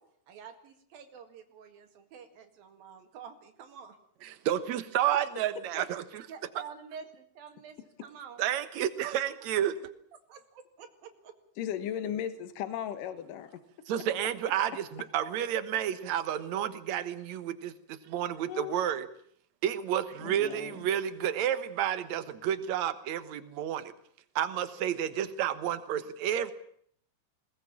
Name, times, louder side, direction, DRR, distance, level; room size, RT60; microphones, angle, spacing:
voice 1, 0.3-4.0 5.7-5.8 6.3-8.4 10.3-11.4, right 7 dB, 85° right, 6 dB, 3.8 m, -48 dB
voice 2, 4.2-6.0 8.4-9.8 13.9-19.1 19.6-23.9 24.4-26.5, right 10 dB, 60° right, 12 dB, 2.3 m, -31 dB
voice 3, 11.6-13.6 18.5-18.8 20.2-20.9, left 10 dB, 70° left, 11 dB, 3.0 m, -36 dB
21.0 x 19.0 x 8.7 m, 0.64 s
omnidirectional pair, 4.0 m